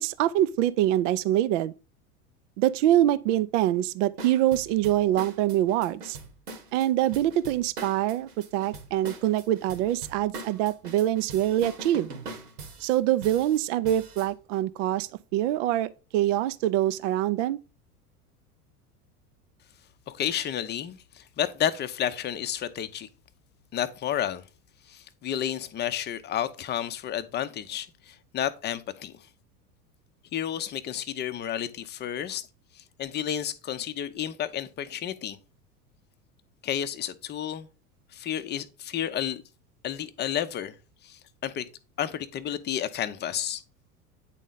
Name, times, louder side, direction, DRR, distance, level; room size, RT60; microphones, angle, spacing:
voice 1, 0.0-1.7 2.6-6.2 6.7-12.1 12.8-17.6, right 13 dB, 55° right, 0.6 m, -25 dB
sound 1, 4.2-14.3, right 3 dB, 75° right, 1.5 m, -42 dB
voice 2, 20.1-23.1 23.7-24.4 24.9-29.2 30.3-32.5 32.8-35.4 36.6-37.7 38.1-39.4 39.8-40.7 41.0-41.7 42.0-43.6, left 10 dB, 25° left, 0.6 m, -31 dB
9.0 x 4.0 x 3.8 m
hypercardioid pair, 85°, 46 cm